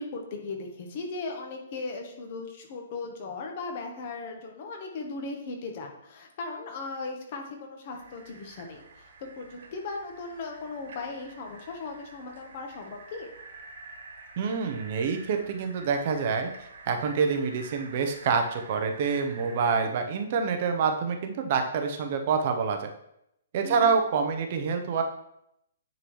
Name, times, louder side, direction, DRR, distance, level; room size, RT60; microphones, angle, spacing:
voice 1, 0.0-13.3 23.6-23.9, left 3 dB, 35° left, 3 dB, 1.1 m, -37 dB
sound 1, 7.9-19.8, right 3 dB, 60° right, 1.6 m, -48 dB
voice 2, 14.4-22.9 23.5-25.0, right 5 dB, 35° right, 5 dB, 0.7 m, -27 dB
9.7 x 3.9 x 3.1 m, 0.77 s
hypercardioid pair, 170°, 0 cm